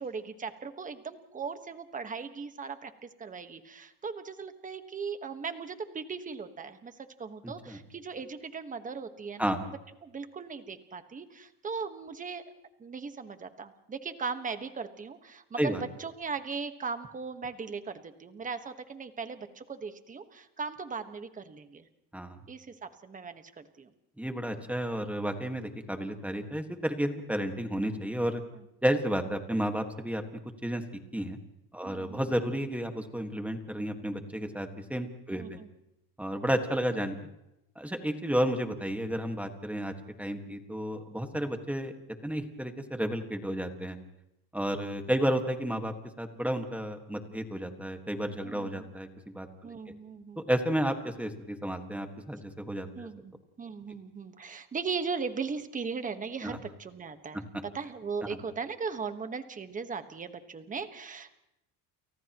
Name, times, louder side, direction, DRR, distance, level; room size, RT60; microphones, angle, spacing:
voice 1, 0.0-9.7 10.0-12.4 12.8-21.8 22.5-23.9 31.8-32.6 35.3-35.7 45.2-45.3 48.4-48.9 49.6-50.5 52.9-53.3 53.6-57.5 57.7-61.3, right 5 dB, 20° right, 8 dB, 1.4 m, -38 dB
voice 2, 24.2-28.4 28.8-30.2 30.6-30.8 31.1-31.4 31.7-35.6 36.2-37.1 37.7-41.9 42.2-44.0 44.5-49.5 50.5-53.1 56.4-56.6 58.3-58.4, equal, 5° right, 5 dB, 1.7 m, -32 dB
30.0 x 29.5 x 3.0 m, 0.85 s
cardioid pair, 155°, 42 cm